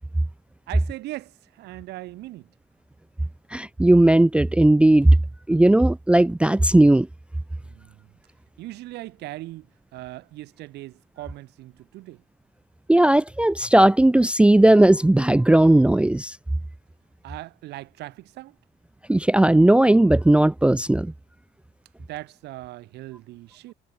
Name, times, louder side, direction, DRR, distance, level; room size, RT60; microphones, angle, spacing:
voice 1, 0.7-2.5 7.6-8.1 8.6-12.2 17.2-18.6 22.0-23.7, right 17 dB, 80° right, 6.1 m, -39 dB
voice 2, 3.5-5.1 5.5-7.1 12.9-16.4 19.1-21.1, right 1 dB, 5° right, 0.5 m, -16 dB
cardioid pair, 110°, 17 cm